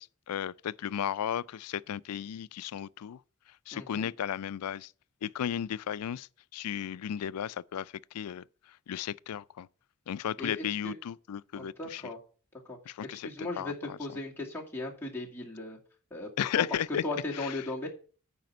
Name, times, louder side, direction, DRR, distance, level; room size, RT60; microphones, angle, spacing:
voice 1, 0.0-3.2 3.7-4.9 5.2-8.4 8.9-9.7 10.1-12.0 12.9-13.3 13.6-14.0 16.4-17.0 17.3-17.5, left 9 dB, 90° left, 0.4 m, -34 dB
voice 2, 3.7-4.1 10.4-11.0 11.6-12.2 12.7-15.8 16.1-16.3 16.6-17.9, left 2 dB, 10° left, 2.2 m, -37 dB
9.3 x 5.0 x 7.7 m
head